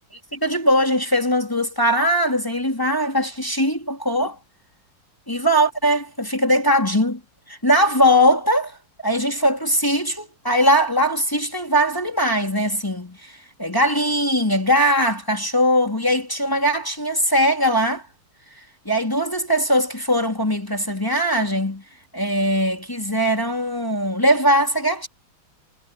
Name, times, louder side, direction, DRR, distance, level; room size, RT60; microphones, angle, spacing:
voice 1, 0.1-4.4 5.3-7.2 7.5-8.8 9.0-18.0 18.8-21.8 22.1-25.1, equal, 10° left, 2.9 m, -20 dB
omnidirectional pair, 2.4 m